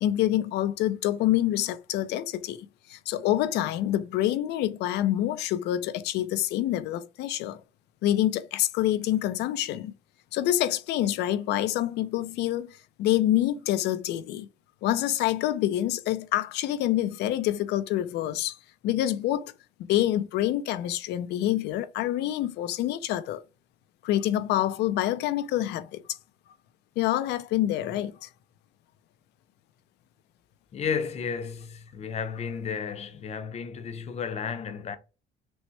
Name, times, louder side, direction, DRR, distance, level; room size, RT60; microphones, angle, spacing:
voice 1, 0.0-7.6 8.0-9.9 10.3-14.5 14.8-18.6 18.8-19.5 19.9-23.4 24.0-26.2 27.0-28.3, left 13 dB, 80° left, 0.5 m, -27 dB
voice 2, 30.7-35.0, left 6 dB, 40° left, 0.7 m, -33 dB
6.1 x 2.1 x 3.2 m
cardioid pair, 110°, 17 cm